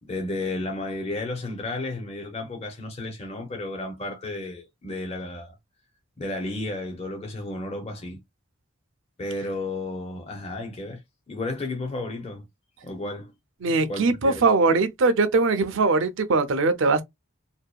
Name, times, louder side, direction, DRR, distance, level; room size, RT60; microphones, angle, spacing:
voice 1, 0.0-5.6 6.2-8.2 9.2-11.0 11.3-12.5 12.8-13.3 13.6-14.4, left 2 dB, 30° left, 0.5 m, -33 dB
voice 2, 13.6-17.0, right 3 dB, 60° right, 0.5 m, -21 dB
2.6 x 2.2 x 2.2 m
head